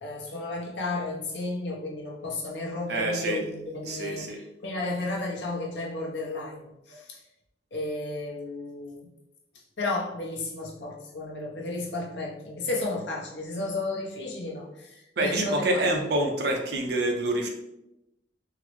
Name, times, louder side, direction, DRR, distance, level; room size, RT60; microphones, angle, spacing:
voice 1, 0.0-7.2 7.7-9.1 9.8-15.8, left 2 dB, 75° left, -2 dB, 0.7 m, -33 dB
voice 2, 2.9-3.4 3.8-4.4 15.2-17.5, right 1 dB, 60° right, 2 dB, 0.6 m, -27 dB
3.7 x 2.0 x 3.0 m, 0.89 s
head